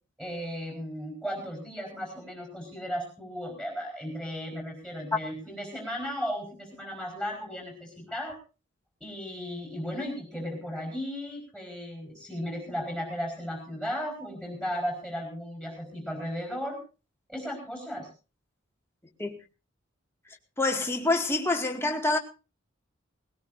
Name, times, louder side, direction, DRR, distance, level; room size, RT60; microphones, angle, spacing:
voice 1, 0.2-8.4 9.0-16.8 17.3-18.1, equal, 5° right, 4.7 m, -35 dB
voice 2, 20.6-22.2, left 2 dB, 10° left, 2.0 m, -26 dB
19.5 x 18.0 x 2.6 m
head